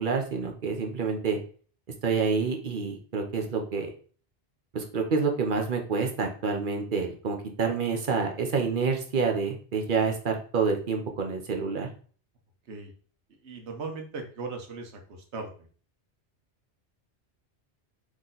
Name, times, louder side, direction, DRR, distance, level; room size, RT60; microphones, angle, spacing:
voice 1, 0.0-1.4 2.0-3.9 4.7-11.9, right 5 dB, 50° right, 3 dB, 0.9 m, -28 dB
voice 2, 13.4-15.5, right 3 dB, 75° right, 3 dB, 1.2 m, -38 dB
4.1 x 3.1 x 3.9 m, 0.42 s
omnidirectional pair, 1.2 m